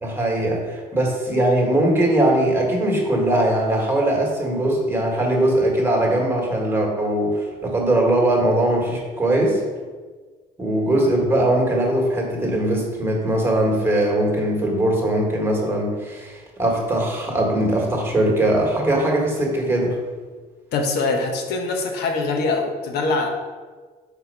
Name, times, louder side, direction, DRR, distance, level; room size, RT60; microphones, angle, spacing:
voice 1, 0.0-9.6 10.6-20.0, right 1 dB, 15° right, -1 dB, 1.6 m, -20 dB
voice 2, 20.7-23.3, left 3 dB, 75° left, 4 dB, 1.0 m, -23 dB
4.5 x 4.3 x 5.4 m, 1.4 s
cardioid pair, 110°, 17 cm